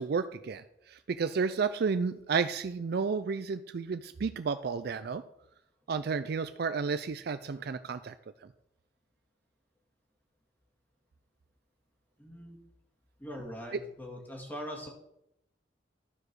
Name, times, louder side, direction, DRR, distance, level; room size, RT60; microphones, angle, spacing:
voice 1, 0.0-5.2 5.9-8.1, right 5 dB, 60° right, 11 dB, 0.4 m, -32 dB
voice 2, 12.2-12.6 13.2-14.9, equal, 10° left, -1 dB, 2.2 m, -42 dB
12.0 x 5.0 x 6.2 m, 0.81 s
head